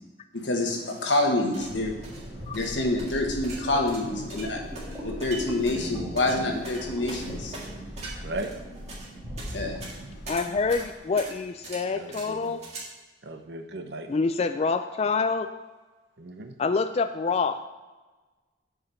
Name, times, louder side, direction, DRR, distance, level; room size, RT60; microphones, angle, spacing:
voice 1, 0.3-2.0 2.5-4.6 5.0-7.5 9.5-9.8, left 2 dB, 90° left, 1 dB, 1.5 m, -27 dB
sound 1, 0.9-12.8, right 3 dB, 40° right, 1.9 m, -43 dB
sound 2, 1.5-10.9, equal, 15° right, 1.8 m, -39 dB
voice 2, 8.2-8.5 11.1-11.2 11.9-12.5 13.2-14.1 16.2-16.6, right 2 dB, 65° right, 7 dB, 0.8 m, -37 dB
voice 3, 10.3-12.6 14.1-15.5 16.6-17.8, left 4 dB, 35° left, 9 dB, 0.3 m, -26 dB
7.9 x 4.9 x 5.5 m, 1.2 s
head